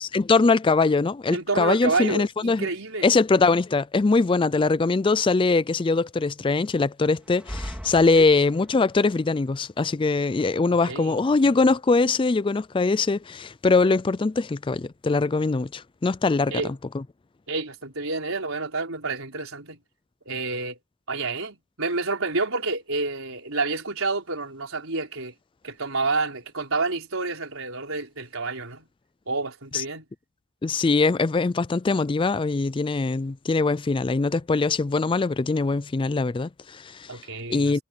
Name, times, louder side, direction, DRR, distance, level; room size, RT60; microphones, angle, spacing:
voice 1, 0.0-2.7 3.0-16.6 16.9-17.0 30.6-37.2 37.5-37.8, left 3 dB, 25° left, 0.4 m, -22 dB
voice 2, 1.3-3.1 8.2-8.3 10.7-11.2 16.5-16.7 17.5-19.8 20.3-20.8 21.1-25.3 25.6-28.9 29.3-30.1 37.1-37.8, right 3 dB, 75° right, 4.7 m, -29 dB
sound 1, 7.2-8.9, equal, 5° right, 3.1 m, -38 dB
head